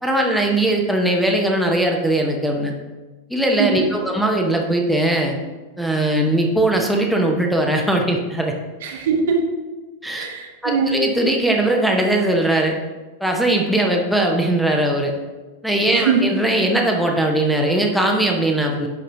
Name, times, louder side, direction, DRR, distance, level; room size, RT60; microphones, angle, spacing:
voice 1, 0.0-2.7 3.3-5.4 5.8-8.5 10.0-10.2 10.6-12.8 13.2-15.1 15.6-18.9, right 1 dB, ahead, 1 dB, 0.8 m, -19 dB
voice 2, 3.6-3.9 8.8-9.4 10.2-11.0 15.9-16.2, right 5 dB, 55° right, 3 dB, 0.9 m, -21 dB
10.0 x 4.3 x 2.7 m, 1.2 s
figure-of-eight pair, 90°, 0 cm